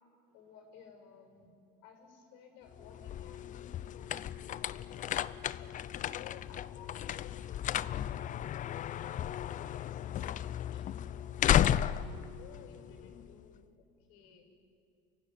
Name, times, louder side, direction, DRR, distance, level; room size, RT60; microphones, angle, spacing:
voice 1, 0.3-1.5 1.8-12.0 12.4-14.5, left 6 dB, 75° left, 4 dB, 6.6 m, -56 dB
sound 1, 2.7-13.4, left 11 dB, 40° left, 0.6 m, -34 dB
29.0 x 16.0 x 9.6 m, 2.6 s
supercardioid pair, 115°, 21 cm